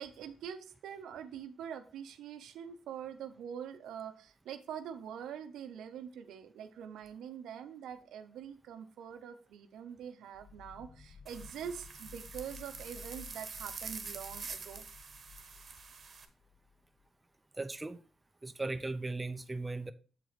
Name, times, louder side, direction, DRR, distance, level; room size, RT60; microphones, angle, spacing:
voice 1, 0.0-14.9, right 8 dB, 85° right, 0.7 m, -44 dB
sound 1, 10.3-17.1, left 6 dB, 45° left, 0.7 m, -55 dB
sound 2, 11.3-16.3, right 5 dB, 50° right, 1.1 m, -46 dB
voice 2, 17.6-18.0 18.4-19.9, right 2 dB, 20° right, 0.5 m, -37 dB
7.4 x 4.4 x 4.0 m
cardioid pair, 70°, 0 cm